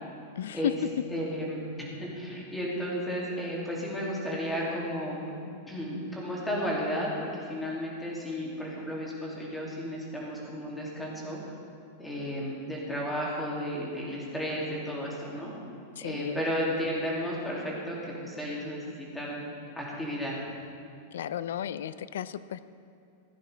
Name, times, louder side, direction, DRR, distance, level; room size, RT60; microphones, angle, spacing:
voice 1, 0.4-0.7 16.0-16.4 21.1-22.6, left 10 dB, 80° left, 15 dB, 0.4 m, -33 dB
voice 2, 1.1-5.3 5.7-11.4 12.0-15.5 16.0-19.4 19.8-20.4, equal, 5° left, -5 dB, 2.5 m, -33 dB
16.0 x 9.4 x 3.4 m, 2.5 s
supercardioid pair, 135°, 0 cm